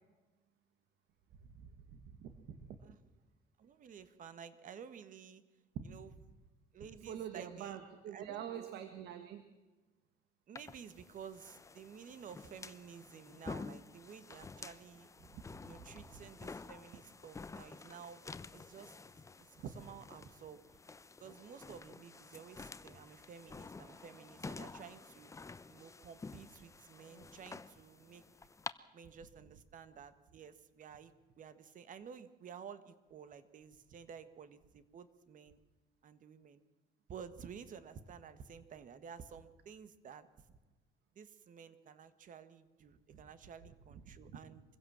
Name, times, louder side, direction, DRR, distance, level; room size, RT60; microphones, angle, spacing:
voice 1, 1.6-2.7 5.8-5.9 7.1-9.4 14.6-14.7 15.2-16.2 19.6-19.7 43.1-43.2 44.1-44.4, right 9 dB, 75° right, 8 dB, 1.8 m, -46 dB
voice 2, 3.6-5.4 5.8-6.1 6.7-7.8 8.1-8.8 10.5-15.1 15.6-18.2 18.5-19.0 19.4-20.6 21.2-25.3 25.7-28.2 28.9-35.6 36.0-36.6 37.1-40.6 41.2-44.6, right 7 dB, 50° right, 12 dB, 1.7 m, -52 dB
sound 1, 10.6-28.7, left 4 dB, 20° left, 0.8 m, -50 dB
24.5 x 16.0 x 7.4 m, 1.2 s
cardioid pair, 110°, 17 cm